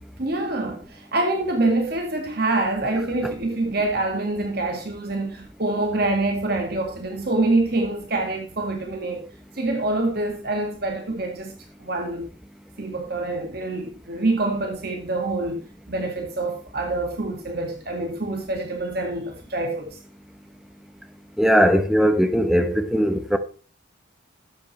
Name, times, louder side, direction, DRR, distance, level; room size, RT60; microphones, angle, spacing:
voice 1, 0.2-9.2 9.6-11.5 11.8-12.3 12.8-20.0, right 2 dB, 50° right, 2.0 m, -26 dB
voice 2, 21.4-23.4, equal, ahead, 0.9 m, -19 dB
12.5 x 8.5 x 3.2 m
head